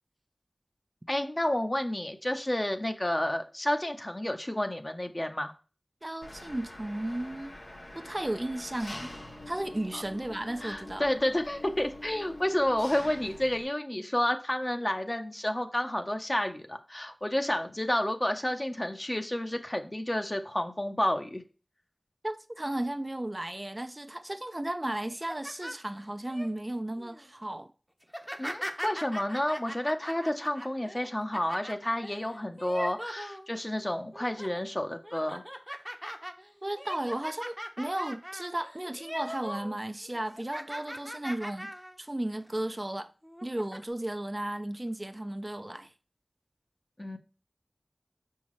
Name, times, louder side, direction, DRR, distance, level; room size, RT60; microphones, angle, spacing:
voice 1, 1.1-5.5 9.9-10.0 10.6-21.4 28.4-35.4 47.0-47.2, left 1 dB, 35° left, 0.8 m, -30 dB
voice 2, 6.0-7.5 7.9-9.1 9.5-11.1 22.2-27.7 36.6-43.1 43.4-45.9, right 1 dB, 35° right, 0.5 m, -34 dB
Engine, 6.2-13.6, left 1 dB, 85° left, 1.3 m, -45 dB
sound 1, 25.1-26.5 27.0-27.3 28.0-33.8 34.1-34.6 35.0-39.8 40.0-42.0 42.4-42.5 43.2-43.8, equal, ahead, 0.8 m, -41 dB
5.6 x 5.3 x 3.1 m
wide cardioid pair, 50°, 0 cm